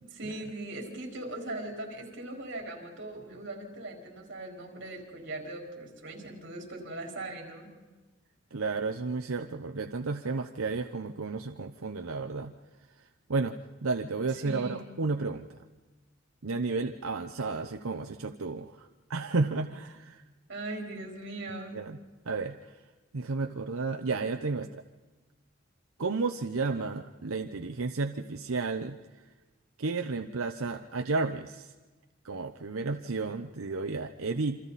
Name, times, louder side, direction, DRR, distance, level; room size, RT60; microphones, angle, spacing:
voice 1, 0.1-7.7 14.4-14.8 20.5-21.9, right 2 dB, 60° right, 0 dB, 4.7 m, -40 dB
voice 2, 8.5-12.5 13.3-13.5 13.8-15.5 16.4-20.2 21.7-22.0 22.3-22.7 23.1-24.8 26.0-29.0 29.8-31.7 32.2-34.6, right 3 dB, 90° right, 6 dB, 0.8 m, -32 dB
27.5 x 26.0 x 4.2 m, 1.2 s
head